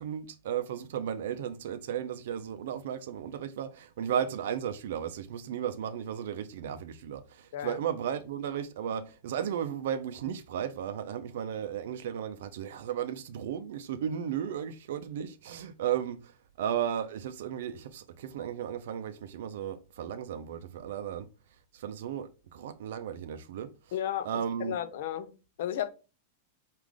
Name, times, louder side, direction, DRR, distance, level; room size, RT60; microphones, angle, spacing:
voice 1, 0.0-16.2 16.6-21.3 21.7-23.7 24.2-24.7, right 9 dB, 70° right, 0.5 m, -34 dB
voice 2, 23.9-24.3 24.6-25.9, left 10 dB, 60° left, 0.5 m, -33 dB
4.7 x 2.4 x 3.6 m
supercardioid pair, 165°, 0 cm